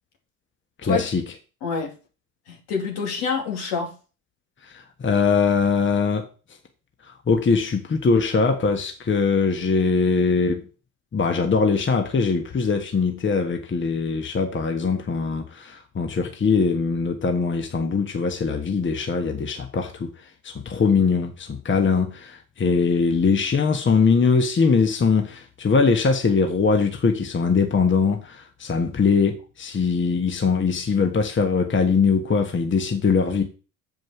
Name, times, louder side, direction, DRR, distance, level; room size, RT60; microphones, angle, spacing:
voice 1, 0.8-1.2 4.6-6.3 7.0-10.6 11.1-20.1 20.4-33.4, left 5 dB, 30° left, 1.5 m, -21 dB
voice 2, 1.6-1.9 2.5-3.9, left 5 dB, 70° left, 2.9 m, -27 dB
7.8 x 5.2 x 5.9 m
hypercardioid pair, 60°, 41 cm